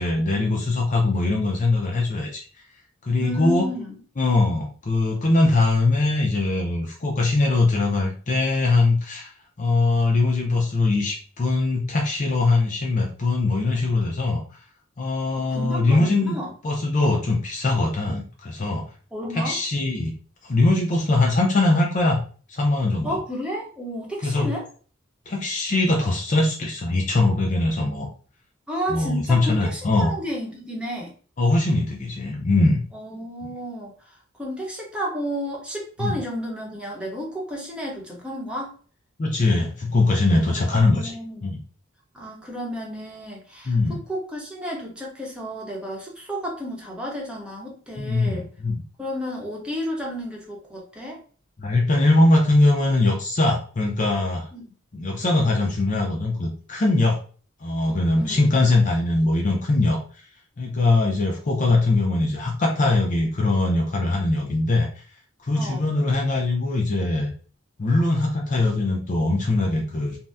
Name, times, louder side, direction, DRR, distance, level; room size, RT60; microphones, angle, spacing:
voice 1, 0.0-2.5 3.0-3.7 4.2-9.3 9.6-14.4 15.0-16.4 16.6-18.8 19.3-20.1 20.4-22.2 22.5-23.2 24.2-24.5 25.3-28.1 28.9-30.1 31.4-32.8 36.0-36.2 39.2-41.1 41.4-41.6 43.7-44.0 48.0-48.8 51.6-54.5 54.9-57.2 57.6-60.0 60.6-64.9 65.4-67.3 67.8-70.2, left 2 dB, 40° left, 0 dB, 0.5 m, -21 dB
voice 2, 3.2-4.0 15.3-16.5 19.1-19.6 23.0-24.7 28.7-31.1 32.9-33.9 34.4-38.7 40.5-40.6 40.9-41.5 42.1-48.5 49.0-51.2 54.5-54.6 58.2-58.4 65.5-65.9, equal, 5° right, -2 dB, 0.8 m, -32 dB
2.7 x 2.0 x 3.4 m, 0.41 s
head